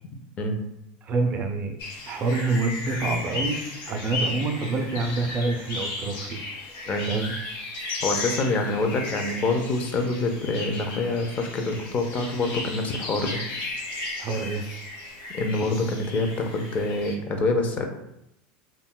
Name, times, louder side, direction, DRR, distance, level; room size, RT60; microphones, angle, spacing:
voice 1, 1.0-1.8 2.1-3.6 3.8-6.4 7.1-7.3 14.2-14.6, right 3 dB, 35° right, 5 dB, 0.3 m, -26 dB
sound 1, 1.8-17.1, left 3 dB, 55° left, 0.9 m, -35 dB
voice 2, 8.0-13.4 15.3-17.8, left 2 dB, 30° left, 4 dB, 0.4 m, -26 dB
2.2 x 2.0 x 3.6 m, 0.83 s
supercardioid pair, 135°, 5 cm